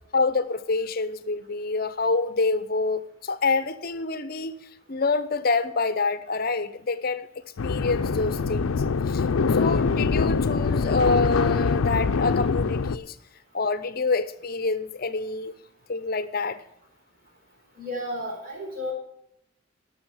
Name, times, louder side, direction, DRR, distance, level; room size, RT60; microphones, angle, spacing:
voice 1, 0.1-4.5 4.9-7.3 7.6-8.8 9.1-13.2 13.5-15.5 15.9-16.6, left 3 dB, 45° left, 0.7 m, -27 dB
sound 1, 7.6-13.0, left 4 dB, 85° left, 0.5 m, -24 dB
voice 2, 17.8-18.9, left 1 dB, 45° right, 4.1 m, -32 dB
12.0 x 6.4 x 9.0 m
head